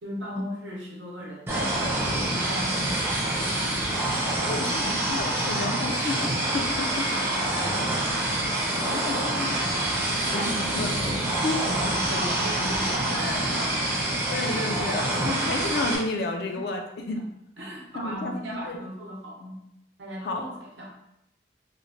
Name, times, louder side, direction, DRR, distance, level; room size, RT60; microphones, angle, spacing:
voice 1, 0.0-2.9 3.3-5.2 6.5-8.1 9.3-10.9 11.3-13.9 14.6-15.3 16.1-16.7 17.1-17.2 17.6-19.6 20.0-20.9, equal, 90° right, -3 dB, 0.7 m, -38 dB
sound 1, 1.5-16.0, right 1 dB, 15° right, 0.4 m, -26 dB
voice 2, 4.5-6.2 6.5-7.0 8.7-9.6 10.3-11.1 11.4-11.6 12.1-12.3 13.1-13.5 14.3-17.2 17.9-18.4 18.7-18.8 20.2-20.4, left 3 dB, 60° left, 3 dB, 0.3 m, -31 dB
3.0 x 2.0 x 2.6 m, 0.81 s
head